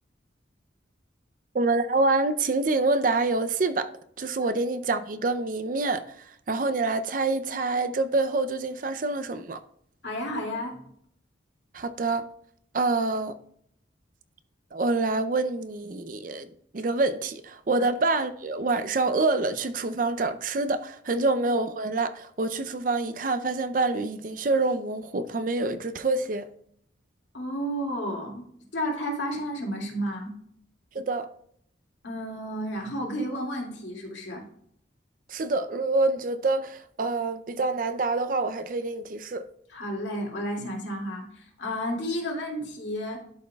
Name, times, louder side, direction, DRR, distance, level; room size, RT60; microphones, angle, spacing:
voice 1, 1.5-3.9 4.2-9.6 11.7-12.3 12.7-13.4 14.7-26.5 30.9-31.3 35.3-39.5, right 3 dB, 45° right, 0.5 m, -26 dB
voice 2, 10.0-10.8 27.3-28.4 28.7-30.3 32.0-34.4 39.7-43.2, equal, 75° left, 2.3 m, -32 dB
12.0 x 5.3 x 2.3 m
head